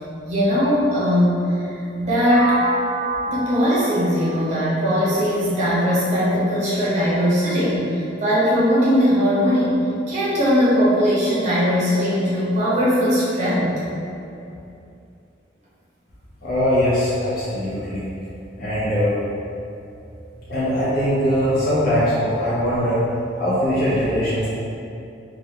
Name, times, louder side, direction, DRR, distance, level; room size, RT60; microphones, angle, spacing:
voice 1, 0.2-2.6 3.3-9.8 10.1-13.8, equal, 40° right, -9 dB, 0.7 m, -19 dB
sound 1, 2.3-6.2, right 2 dB, 5° left, 0.8 m, -29 dB
voice 2, 16.4-18.0 18.6-19.2 20.5-23.0 23.4-24.5, equal, 55° left, -10 dB, 0.6 m, -21 dB
2.3 x 2.1 x 2.8 m, 2.7 s
head